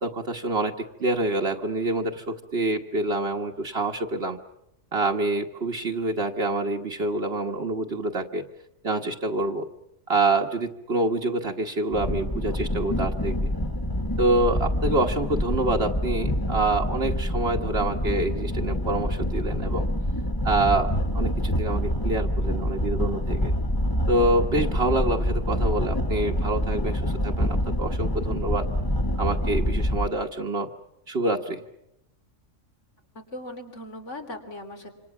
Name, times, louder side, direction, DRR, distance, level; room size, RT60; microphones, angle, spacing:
voice 1, 0.0-4.4 4.9-8.4 8.8-9.7 10.1-13.5 14.2-19.9 20.4-23.5 24.1-28.7 29.2-30.7 31.1-31.6, right 2 dB, 55° right, 2 dB, 1.6 m, -26 dB
sound 1, 11.9-30.1, equal, 20° left, 1.1 m, -26 dB
voice 2, 33.1-34.9, left 1 dB, 70° left, 5 dB, 3.8 m, -39 dB
27.0 x 26.5 x 7.2 m, 0.85 s
omnidirectional pair, 1.3 m